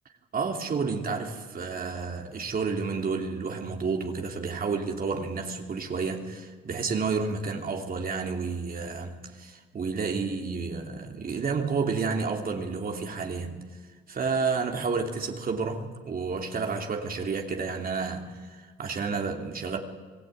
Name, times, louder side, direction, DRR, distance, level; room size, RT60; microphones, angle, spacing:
voice 1, 0.3-13.7 14.1-19.8, right 4 dB, 45° right, 2.9 m, -30 dB
25.5 x 20.5 x 9.3 m
cardioid pair, 90°, 20 cm